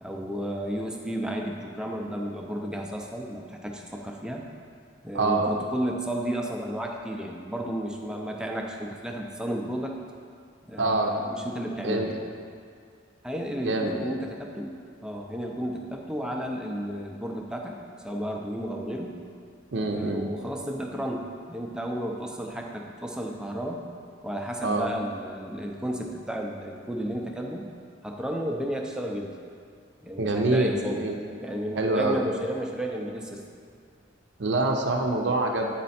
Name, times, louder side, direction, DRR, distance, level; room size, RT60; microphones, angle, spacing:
voice 1, 0.0-4.4 5.0-10.0 10.7-12.2 13.2-14.8 15.0-17.8 18.0-19.2 19.8-23.8 24.2-27.7 28.0-29.4 30.0-31.1 31.4-33.4, equal, 5° right, 0 dB, 0.5 m, -33 dB
voice 2, 5.1-5.5 10.8-11.1 11.8-12.1 13.6-14.1 19.7-20.3 24.6-24.9 30.2-31.2 31.7-32.2 34.4-35.7, right 2 dB, 60° right, 1 dB, 0.6 m, -25 dB
9.2 x 4.2 x 4.2 m, 2.2 s
head